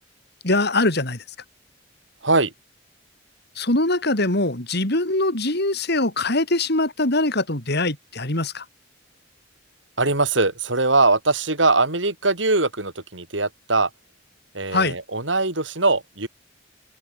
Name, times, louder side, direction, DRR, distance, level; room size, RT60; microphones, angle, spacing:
voice 1, 0.4-1.2 3.6-8.6 14.7-15.0, left 2 dB, 60° left, 4.5 m, -22 dB
voice 2, 10.0-13.9 14.5-16.3, right 3 dB, 75° right, 6.0 m, -21 dB
open air
head